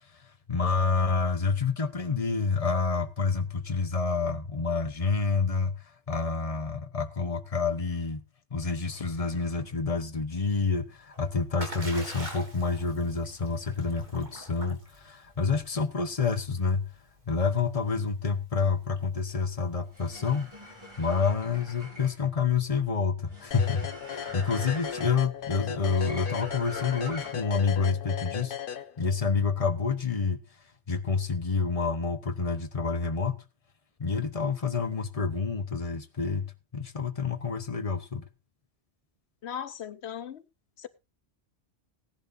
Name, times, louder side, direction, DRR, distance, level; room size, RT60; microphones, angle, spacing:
voice 1, 0.1-8.2 8.5-16.9 17.3-20.5 21.0-28.6 29.0-30.4 30.9-33.4 34.0-38.2, left 5 dB, 35° left, 1.1 m, -28 dB
Splash splatter, 10.9-20.7, right 1 dB, 45° right, 3.6 m, -46 dB
sound 1, 19.9-27.6, left 1 dB, 25° right, 7.0 m, -45 dB
sound 2, 23.5-29.3, left 8 dB, 60° left, 0.9 m, -37 dB
voice 2, 39.4-40.4 40.8-40.9, left 8 dB, 90° left, 1.2 m, -37 dB
18.0 x 11.0 x 2.6 m
omnidirectional pair, 1.1 m